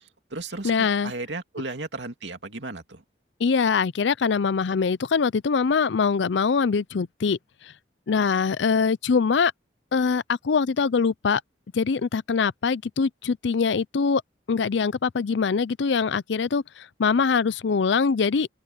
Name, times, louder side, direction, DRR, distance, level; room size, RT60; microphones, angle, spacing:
voice 1, 0.0-3.0, right 2 dB, 80° right, 2.4 m, -35 dB
voice 2, 0.6-1.1 3.4-7.4 8.1-9.5 9.9-11.4 11.7-14.2 14.5-18.5, left 5 dB, 80° left, 0.5 m, -23 dB
open air
head